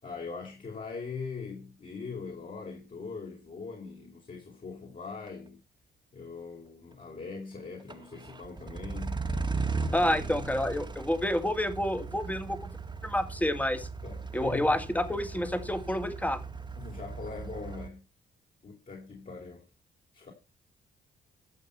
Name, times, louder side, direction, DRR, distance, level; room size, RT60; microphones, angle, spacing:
voice 1, 0.0-5.6 6.1-9.3 9.8-10.5 14.0-14.8 16.8-18.0 18.6-19.6 20.1-20.3, left 4 dB, 45° left, 5.0 m, -41 dB
sound 1, 5.3-5.4 7.9-17.9, right 4 dB, 25° right, 1.8 m, -37 dB
voice 2, 9.9-12.7 13.0-13.9 14.3-16.4, left 1 dB, 10° left, 2.2 m, -29 dB
14.0 x 6.5 x 5.8 m
supercardioid pair, 65°, 19 cm